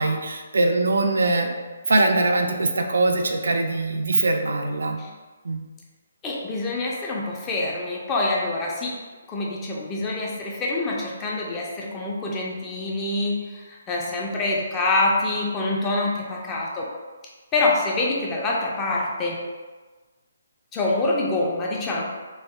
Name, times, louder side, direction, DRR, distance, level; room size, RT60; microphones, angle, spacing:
voice 1, 0.0-1.5 1.9-5.0 5.4-5.6, right 2 dB, 80° right, 4 dB, 0.3 m, -22 dB
voice 2, 6.2-9.0 9.3-16.9 17.5-19.4 20.7-22.0, left 2 dB, 20° left, -3 dB, 0.5 m, -26 dB
3.4 x 2.3 x 2.2 m, 1.3 s
hypercardioid pair, 155°, 0 cm